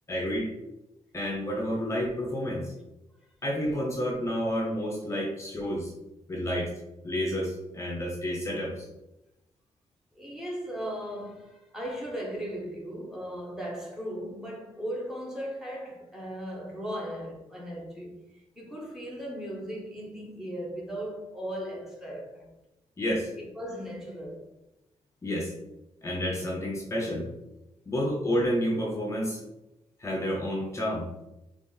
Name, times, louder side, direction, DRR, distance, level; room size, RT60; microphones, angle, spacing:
voice 1, 0.1-0.5 1.1-2.7 3.4-5.9 6.3-6.7 7.0-8.9 23.0-23.3 25.2-25.5 26.0-27.3 27.9-29.4 30.0-31.1, equal, 25° left, 0.6 m, -30 dB
voice 2, 10.1-22.5 23.4-24.5, equal, 5° right, 0.9 m, -37 dB
4.0 x 3.0 x 3.8 m
wide cardioid pair, 165°, 12 cm